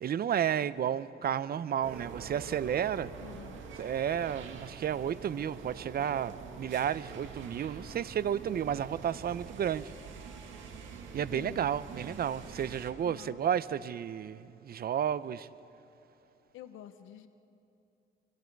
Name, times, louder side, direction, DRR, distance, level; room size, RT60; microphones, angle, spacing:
voice 1, 0.0-3.1 3.8-9.9 11.1-15.5, right 9 dB, 50° right, 0.7 m, -32 dB
sound 1, 1.8-12.9, right 5 dB, 75° right, 2.1 m, -46 dB
voice 2, 3.2-3.6 11.3-11.7 13.0-13.4 16.5-17.3, left 11 dB, 85° left, 0.9 m, -48 dB
26.5 x 25.5 x 4.7 m
cardioid pair, 90°, 20 cm